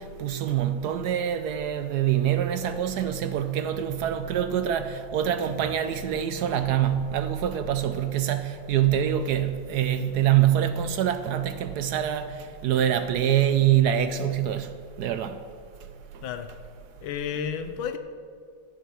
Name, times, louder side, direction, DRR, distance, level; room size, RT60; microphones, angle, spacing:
voice 1, 0.0-12.3 12.6-14.7 15.0-15.3, right 10 dB, 70° right, 1.0 m, -25 dB
voice 2, 5.4-5.8 6.6-7.0 7.5-8.0 16.2-16.5 17.0-18.0, left 7 dB, 85° left, 1.5 m, -34 dB
12.5 x 7.4 x 6.9 m
omnidirectional pair, 2.1 m